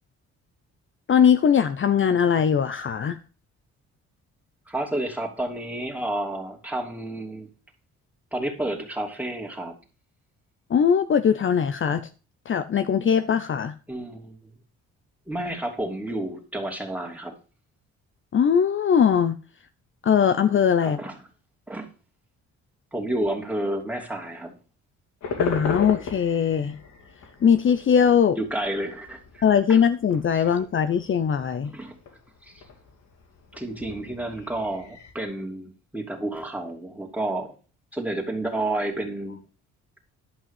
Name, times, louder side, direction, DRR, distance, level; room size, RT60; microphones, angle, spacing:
voice 1, 1.1-3.2 10.7-12.0 12.5-13.7 18.3-19.4 20.0-21.0 25.4-26.7 27.4-28.4 29.4-31.7, left 7 dB, 40° left, 0.7 m, -20 dB
voice 2, 4.7-7.5 8.3-9.7 13.9-14.5 15.3-17.3 20.8-21.2 21.7-21.9 22.9-24.5 28.3-29.4 29.7-29.8 30.4-30.5 31.7-32.0 32.4-32.6 33.5-37.5 37.9-39.4, right 1 dB, 5° right, 2.9 m, -30 dB
sound 1, 25.2-35.1, left 4 dB, 70° left, 3.0 m, -36 dB
11.5 x 5.5 x 7.3 m
cardioid pair, 90°, 30 cm